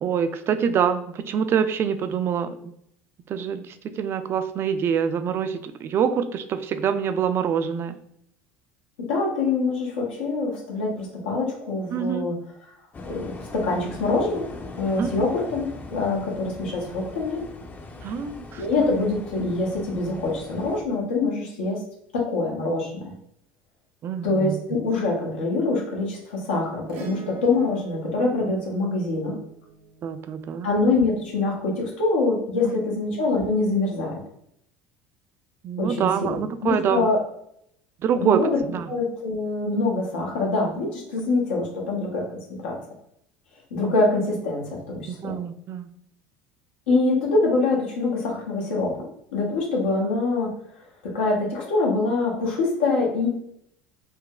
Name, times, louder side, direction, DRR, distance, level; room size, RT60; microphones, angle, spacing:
voice 1, 0.0-2.5 3.3-8.0 11.9-12.3 15.0-15.2 18.0-18.6 24.0-24.6 30.0-30.7 32.6-32.7 35.6-37.1 38.0-38.4 38.7-38.8 45.0-45.9, right 7 dB, 45° right, 10 dB, 0.3 m, -25 dB
voice 2, 9.0-12.7 13.1-17.4 18.6-21.8 22.1-23.1 24.2-29.4 30.6-34.2 35.8-37.2 38.1-38.6 38.9-42.8 43.7-45.4 46.9-50.5 51.0-53.3, left 3 dB, 90° left, -1 dB, 0.9 m, -25 dB
sound 1, 12.9-20.8, left 3 dB, 25° left, 0.5 m, -40 dB
Acoustic guitar / Strum, 26.9-31.5 33.4-33.5, right 6 dB, 85° right, 0.7 m, -44 dB
3.9 x 2.1 x 2.3 m, 0.72 s
supercardioid pair, 85°, 6 cm